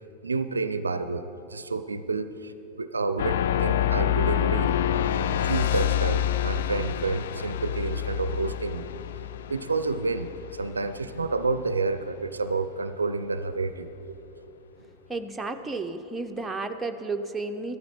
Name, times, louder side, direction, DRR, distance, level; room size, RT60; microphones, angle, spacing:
voice 1, 0.2-4.7 5.4-8.9 9.5-14.1, right 3 dB, 75° right, 12 dB, 0.5 m, -29 dB
sound 1, 3.2-11.7, left 10 dB, 60° left, 0.3 m, -27 dB
voice 2, 15.1-17.8, right 3 dB, 10° right, 4 dB, 0.7 m, -32 dB
14.0 x 13.0 x 4.5 m, 3.0 s
figure-of-eight pair, 90°, 0 cm